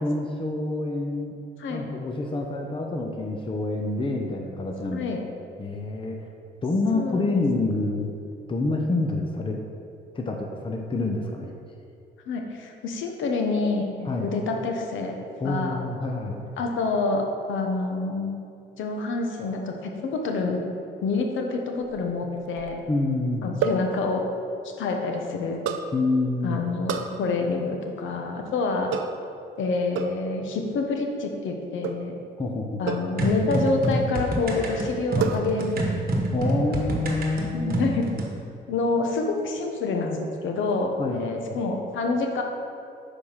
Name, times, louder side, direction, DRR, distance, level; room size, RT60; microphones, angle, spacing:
voice 1, 0.0-1.3 1.7-5.1 5.6-6.2 6.6-8.2 8.5-9.6 10.1-11.5 14.1-14.3 15.4-16.4 22.9-23.5 25.9-26.6 32.4-32.8 36.3-37.8 41.0-41.6, left 2 dB, 25° left, 2 dB, 0.8 m, -27 dB
voice 2, 6.9-7.4 12.3-15.2 15.4-15.8 16.6-18.4 18.8-20.6 21.0-22.8 23.4-24.2 24.8-25.6 26.4-28.9 29.6-32.1 32.8-35.8 36.5-36.6 37.5-38.1 38.7-42.4, left 3 dB, 75° left, 3 dB, 1.0 m, -27 dB
sound 1, 21.8-22.8 23.6-23.9 25.7-25.9 26.9-27.2 28.9-29.3 30.0-30.3 31.8-32.1 32.9-33.2 33.8-34.3 35.2-35.8 36.1-36.5, right 7 dB, 85° right, 0.5 m, -30 dB
sound 2, 33.2-38.3, right 1 dB, 50° right, 1.3 m, -27 dB
6.8 x 4.9 x 5.7 m, 2.5 s
cardioid pair, 90°, 20 cm